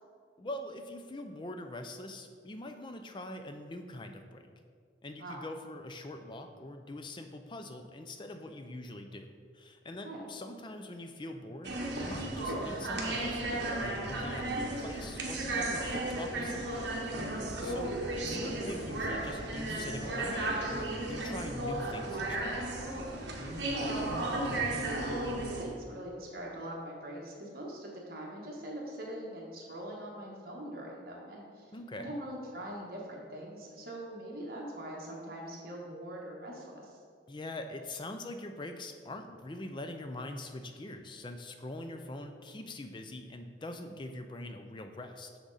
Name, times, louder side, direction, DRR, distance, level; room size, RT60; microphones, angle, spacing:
voice 1, 0.4-4.4 5.0-16.8 17.6-22.6 31.7-32.2 37.3-45.4, left 1 dB, 25° left, 6 dB, 0.4 m, -43 dB
sound 1, 11.6-25.6, right 2 dB, 70° right, 1.0 m, -34 dB
voice 2, 17.3-17.7 23.6-37.0 41.8-42.0, right 1 dB, 50° right, -3 dB, 1.3 m, -42 dB
6.3 x 6.2 x 4.0 m, 2.1 s
head